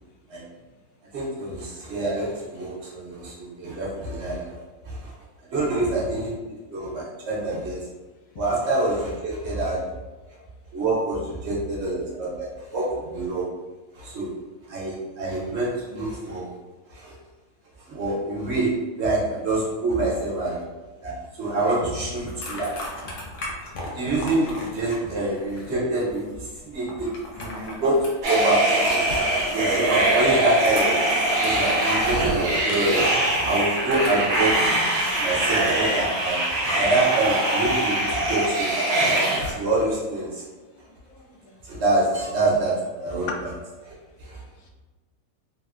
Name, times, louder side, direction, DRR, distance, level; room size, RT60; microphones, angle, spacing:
voice 1, 1.1-4.5 4.9-5.1 5.5-6.4 6.7-7.8 8.4-9.9 10.7-13.5 13.9-14.3 14.7-16.5 16.9-17.1 17.9-20.6 21.0-22.7 23.9-29.0 29.5-31.0 31.4-33.1 33.4-34.6 35.1-36.4 36.8-38.7 39.5-40.4 41.6-43.3 43.8-43.9 44.2-44.4, right 2 dB, 60° right, -5 dB, 1.0 m, -26 dB
sound 1, 22.1-35.8, left 1 dB, 55° left, 0.6 m, -38 dB
sound 2, 28.2-39.5, right 1 dB, 85° right, 1.0 m, -22 dB
voice 2, 41.1-41.6 42.7-42.8 43.2-43.4 44.6-44.7, left 3 dB, 85° left, 1 dB, 1.0 m, -37 dB
3.3 x 2.1 x 2.4 m, 1.3 s
omnidirectional pair, 1.4 m